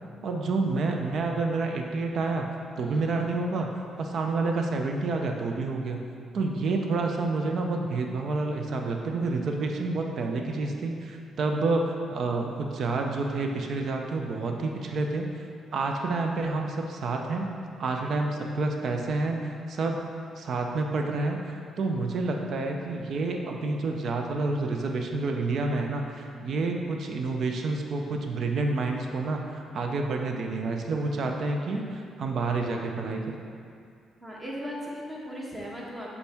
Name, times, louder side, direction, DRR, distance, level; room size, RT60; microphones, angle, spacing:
voice 1, 0.2-2.5 2.8-6.0 6.3-15.3 15.7-17.5 17.8-20.0 20.4-33.3, right 3 dB, 60° right, 2 dB, 0.6 m, -29 dB
voice 2, 2.8-3.1 34.2-36.2, equal, 20° right, -4 dB, 1.4 m, -38 dB
6.9 x 4.2 x 3.5 m, 2.3 s
cardioid pair, 90°, 0 cm